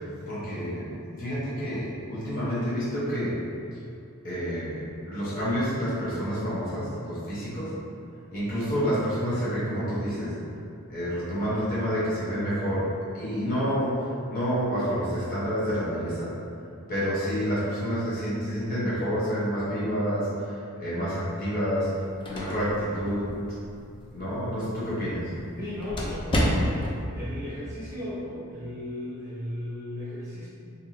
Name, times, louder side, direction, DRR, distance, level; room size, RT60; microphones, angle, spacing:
voice 1, 0.3-0.8 1.1-3.4 4.2-7.7 8.3-10.3 10.9-12.9 13.1-14.0 14.3-16.3 16.9-20.5 20.8-21.9 22.3-23.3 24.1-25.3, equal, 40° left, -10 dB, 1.1 m, -28 dB
sound 1, 21.8-27.0, equal, 25° left, 0.4 m, -32 dB
voice 2, 25.6-30.5, left 1 dB, 15° right, -11 dB, 0.9 m, -36 dB
3.4 x 2.7 x 2.8 m, 2.5 s
head